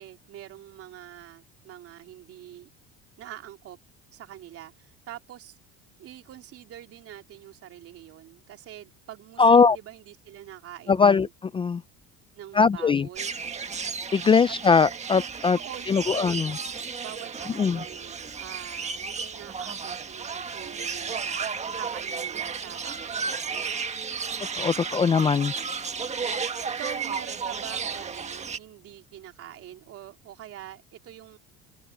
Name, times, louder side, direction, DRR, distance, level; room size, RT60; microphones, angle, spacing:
voice 1, 0.0-2.7 3.2-3.8 4.1-5.6 6.0-11.3 12.3-13.3 14.5-14.6 15.1-15.2 15.5-16.7 17.0-21.5 21.8-23.7 25.9-26.5 26.8-31.4, right 12 dB, 50° right, 3.2 m, -44 dB
voice 2, 9.4-9.8 10.9-11.8 12.5-13.1 14.1-15.6 15.9-16.5 17.6-17.8 24.6-25.5, left 5 dB, 20° left, 0.4 m, -20 dB
sound 1, 13.2-28.6, right 5 dB, 25° right, 1.5 m, -33 dB
cardioid pair, 125°, 29 cm